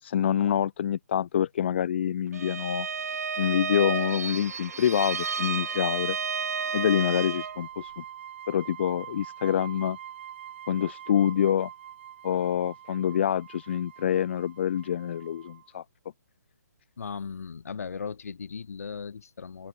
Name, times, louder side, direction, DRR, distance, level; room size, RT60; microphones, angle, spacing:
voice 1, 0.0-2.9 3.4-6.5 6.7-8.0 8.5-10.0 10.7-11.7 12.2-15.8, left 9 dB, 40° left, 0.8 m, -26 dB
Bowed string instrument, 2.3-7.6, right 6 dB, 60° right, 0.6 m, -31 dB
sound 1, 4.3-15.7, right 10 dB, 40° right, 4.5 m, -45 dB
voice 2, 17.0-19.7, left 6 dB, 55° left, 3.5 m, -37 dB
open air
figure-of-eight pair, 140°, 10 cm